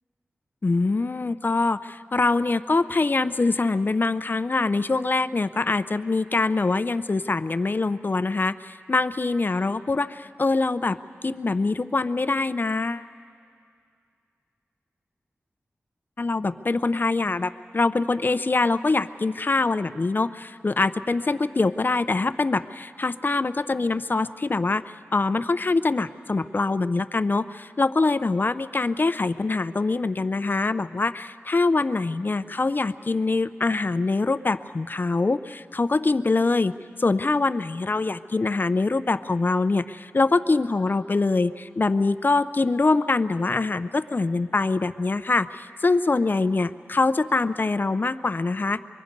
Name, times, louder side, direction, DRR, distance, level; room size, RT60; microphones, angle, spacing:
voice 1, 0.6-11.0 11.2-13.1 16.2-24.8 25.1-36.7 37.0-48.8, left 3 dB, 45° left, 13 dB, 0.5 m, -24 dB
25.5 x 23.5 x 5.3 m, 2.3 s
wide cardioid pair, 60°, 5 cm